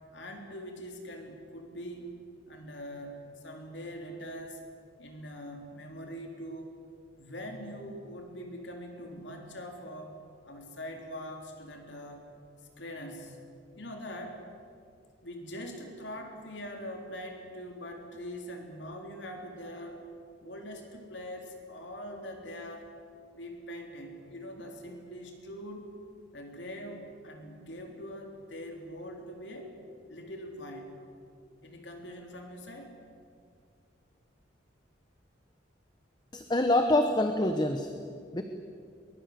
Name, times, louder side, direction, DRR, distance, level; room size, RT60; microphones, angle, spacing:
voice 1, 0.1-2.2 2.5-3.2 3.4-4.6 5.0-6.7 7.1-10.2 10.5-12.3 12.8-13.4 13.8-14.5 15.2-20.1 20.4-22.9 23.3-25.9 26.3-29.7 30.1-31.0 31.6-32.9, equal, 70° left, 3 dB, 3.4 m, -43 dB
voice 2, 36.3-37.9 38.3-38.4, left 1 dB, 25° left, 6 dB, 1.2 m, -25 dB
23.0 x 22.0 x 7.9 m, 2.3 s
head